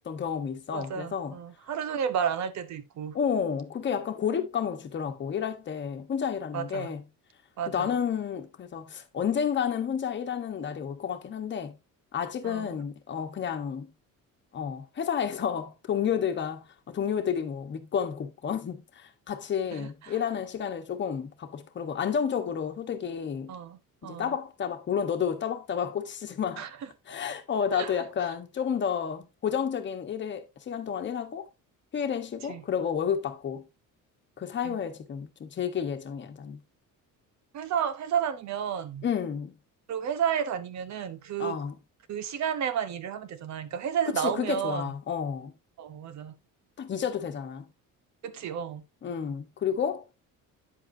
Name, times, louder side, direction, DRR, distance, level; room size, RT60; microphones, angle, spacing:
voice 1, 0.0-1.4 3.1-7.0 7.7-11.8 12.1-13.9 14.5-23.5 24.0-26.6 27.1-31.5 31.9-33.6 34.4-36.6 39.0-39.5 41.4-41.8 44.1-45.5 46.8-47.7 49.0-50.3, left 7 dB, 35° left, 1.3 m, -31 dB
voice 2, 0.7-3.2 6.5-6.9 7.6-7.9 12.4-12.7 19.7-20.2 23.5-24.3 26.6-26.9 27.7-28.0 32.5-32.6 34.6-34.8 37.5-39.0 39.9-41.6 42.1-44.9 45.8-46.3 48.2-48.8, right 8 dB, 55° right, 1.2 m, -32 dB
9.8 x 7.9 x 2.8 m
cardioid pair, 180°, 33 cm